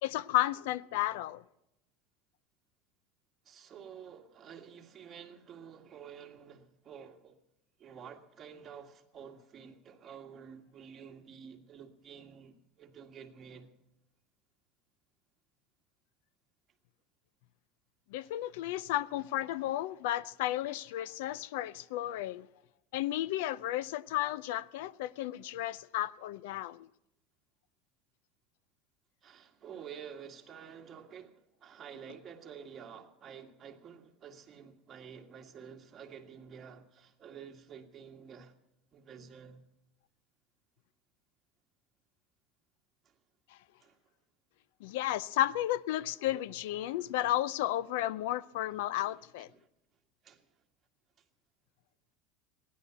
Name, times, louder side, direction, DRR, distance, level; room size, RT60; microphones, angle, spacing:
voice 1, 0.0-1.4 18.1-22.5 22.9-26.9 44.8-49.5, left 14 dB, 80° left, 0.5 m, -33 dB
voice 2, 3.4-7.3 7.8-13.7 18.2-18.6 29.2-38.5 38.9-39.6 43.0-43.1 43.8-44.0 49.0-49.7 50.2-50.6 51.2-51.3, right 7 dB, 30° right, 1.8 m, -50 dB
15.5 x 11.0 x 8.0 m
supercardioid pair, 135°, 0 cm